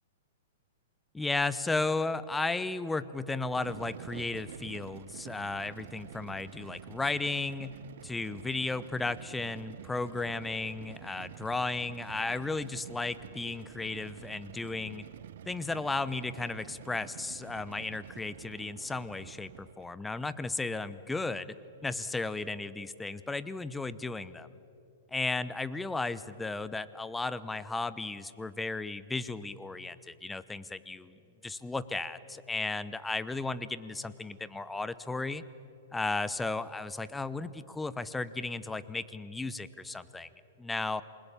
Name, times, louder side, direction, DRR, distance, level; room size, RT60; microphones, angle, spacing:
voice 1, 1.1-15.0 15.5-21.5 21.8-24.5 25.1-31.2 31.4-35.4 35.9-40.3 40.6-41.0, left 3 dB, 10° left, 15 dB, 0.9 m, -34 dB
sound 1, 3.4-19.9, right 11 dB, 60° right, 0.6 m, -48 dB
27.5 x 20.5 x 8.5 m, 2.8 s
figure-of-eight pair, 110°, 0 cm